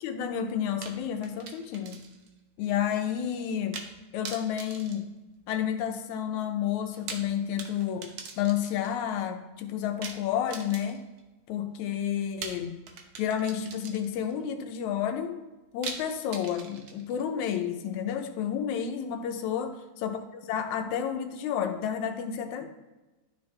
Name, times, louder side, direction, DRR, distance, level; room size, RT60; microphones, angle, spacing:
voice 1, 0.0-2.0 2.6-3.8 4.1-5.1 5.5-11.0 11.5-12.8 13.2-15.4 15.7-20.2 20.5-22.7, left 9 dB, 80° left, 6 dB, 2.0 m, -30 dB
sound 1, 0.8-2.3 2.6-2.7 3.7-4.0 4.2-5.8 6.8-9.0 10.0-11.2 12.4-14.3 15.8-17.2, right 5 dB, 75° right, 1.2 m, -42 dB
11.5 x 4.4 x 3.2 m, 1.1 s
omnidirectional pair, 3.3 m